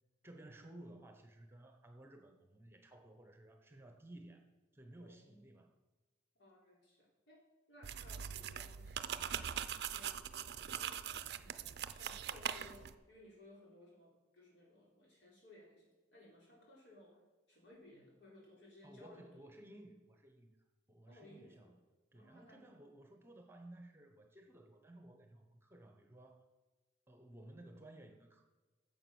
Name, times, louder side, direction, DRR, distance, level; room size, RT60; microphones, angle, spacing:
voice 1, 0.2-4.4 4.7-5.7 18.8-20.6 20.9-21.8 22.1-26.4 27.1-28.4, right 1 dB, 15° right, 5 dB, 1.0 m, -56 dB
voice 2, 5.0-5.5 6.4-7.4 7.7-9.6 9.9-17.2 17.5-19.5 21.1-21.7 22.1-22.7, left 1 dB, 80° left, -3 dB, 3.8 m, -61 dB
sound 1, 7.8-12.9, right 8 dB, 60° right, 0.4 m, -42 dB
9.8 x 7.1 x 6.3 m, 1.3 s
head